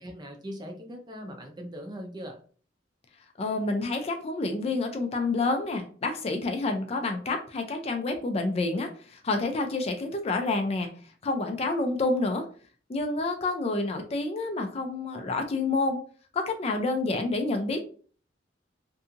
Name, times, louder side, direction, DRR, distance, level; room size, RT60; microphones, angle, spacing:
voice 1, 0.0-2.4, equal, 25° right, 3 dB, 0.5 m, -40 dB
voice 2, 3.4-10.9 11.2-12.4 12.9-16.0 16.3-17.8, left 3 dB, 35° left, 4 dB, 0.4 m, -28 dB
2.7 x 2.5 x 2.4 m, 0.42 s
head